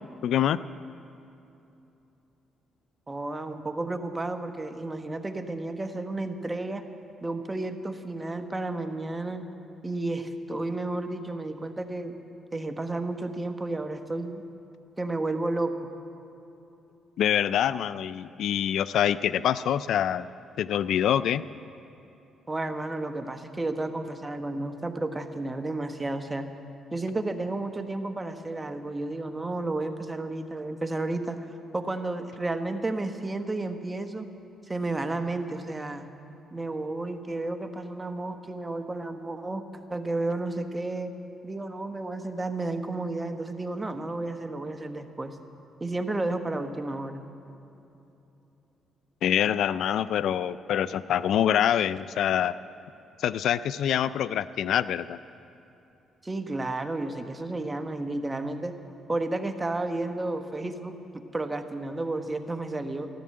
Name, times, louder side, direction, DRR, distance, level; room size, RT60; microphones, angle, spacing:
voice 1, 0.2-0.6 17.2-20.3 20.6-21.4 49.2-52.5 53.2-55.2, left 10 dB, 75° left, 16 dB, 0.3 m, -25 dB
voice 2, 3.1-6.8 7.2-9.4 9.8-12.1 12.5-14.4 15.0-15.9 22.5-26.5 26.9-31.4 31.7-34.3 34.7-36.1 36.5-39.6 39.9-41.1 41.4-45.4 45.8-47.2 56.2-58.7 59.1-61.0 61.3-63.1, right 2 dB, 20° right, 7 dB, 1.1 m, -32 dB
14.5 x 12.0 x 7.6 m, 2.9 s
cardioid pair, 90°, 0 cm